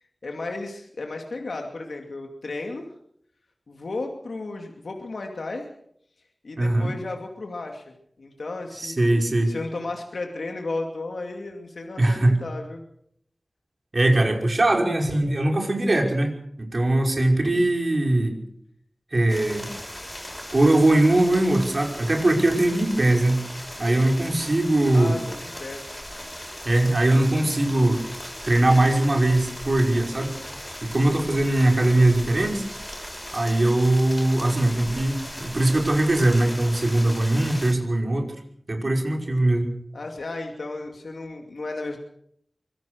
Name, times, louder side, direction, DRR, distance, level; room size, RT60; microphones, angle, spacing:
voice 1, 0.2-2.9 3.7-5.7 6.4-7.9 8.2-9.0 9.5-12.8 24.9-26.0 39.9-42.0, left 2 dB, 85° left, 2 dB, 2.6 m, -34 dB
voice 2, 6.6-6.9 8.8-9.5 12.0-12.4 13.9-18.4 19.1-19.7 20.5-23.5 23.8-25.2 26.7-28.0 28.4-30.3 30.8-32.6 33.3-38.3 38.7-39.7, right 1 dB, 55° right, 2 dB, 5.5 m, -21 dB
sound 1, 19.3-37.7, equal, 10° left, 7.3 m, -38 dB
24.5 x 17.0 x 6.4 m, 0.70 s
wide cardioid pair, 55°, 0 cm